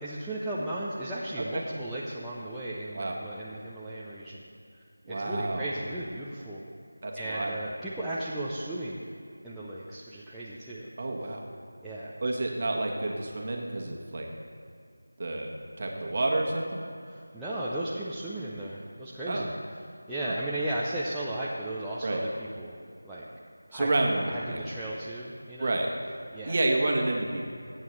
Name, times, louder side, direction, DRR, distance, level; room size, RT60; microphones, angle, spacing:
voice 1, 0.0-4.4 5.1-6.6 7.2-9.0 9.4-10.9 11.8-12.1 17.1-19.5 20.1-22.8 23.0-23.3 23.7-25.8 26.3-26.6, right 1 dB, ahead, -11 dB, 0.5 m, -35 dB
voice 2, 5.1-5.7 7.0-7.6 11.0-11.4 12.2-14.3 15.2-15.5 15.8-16.8 19.2-19.5 20.2-20.4 22.0-22.2 23.7-24.6 25.6-25.9 26.5-27.5, right 2 dB, 35° right, 0 dB, 1.3 m, -29 dB
21.0 x 8.9 x 3.2 m, 2.5 s
figure-of-eight pair, 175°, 0 cm